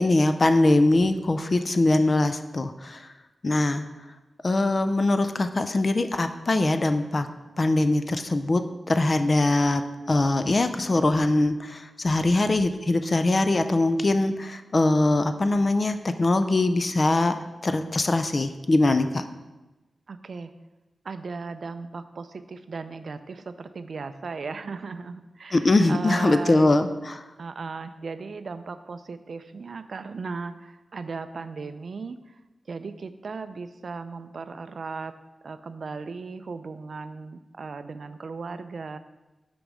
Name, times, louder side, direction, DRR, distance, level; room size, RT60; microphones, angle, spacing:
voice 1, 0.0-3.1 3.4-3.8 4.4-7.3 7.6-8.6 8.9-17.3 17.6-19.2 25.5-27.2, left 2 dB, 30° left, 9 dB, 0.4 m, -22 dB
voice 2, 20.1-20.5 21.0-26.8 27.4-32.4 32.7-35.1 35.4-39.0, right 4 dB, 55° right, 11 dB, 0.4 m, -36 dB
6.4 x 5.2 x 4.8 m, 1.1 s
wide cardioid pair, 165°, 0 cm